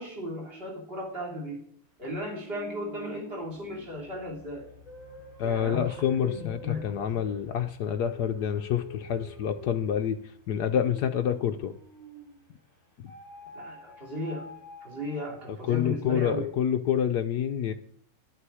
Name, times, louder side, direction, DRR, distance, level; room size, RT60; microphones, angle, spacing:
voice 1, 0.0-1.6 2.0-4.7 5.4-7.2 13.5-14.5 14.8-16.5, left 1 dB, 30° right, -1 dB, 3.1 m, -36 dB
sound 1, 2.3-12.5 13.1-15.8, equal, 45° right, 7.4 m, -47 dB
voice 2, 5.4-10.2 10.5-11.7 15.7-17.7, left 9 dB, 70° left, 7 dB, 1.0 m, -27 dB
11.5 x 11.0 x 4.9 m, 0.64 s
omnidirectional pair, 2.2 m